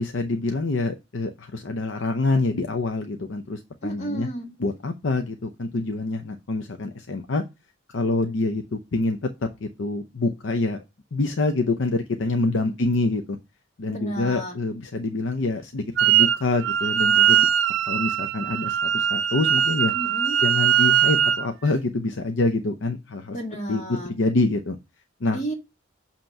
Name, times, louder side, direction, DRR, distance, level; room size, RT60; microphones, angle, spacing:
voice 1, 0.0-4.3 4.6-7.4 7.9-10.8 11.1-13.4 13.8-17.5 17.8-19.9 20.4-23.4 23.7-24.8 25.2-25.4, left 2 dB, 70° left, 0.6 m, -26 dB
voice 2, 3.8-4.5 12.6-12.7 13.9-14.6 19.9-20.4 23.3-24.1 25.3-25.5, right 1 dB, 35° left, 1.9 m, -32 dB
Wind instrument woodwind instrument, 16.0-16.4 16.6-21.5, right 9 dB, 75° right, 0.6 m, -21 dB
7.7 x 3.0 x 5.7 m
head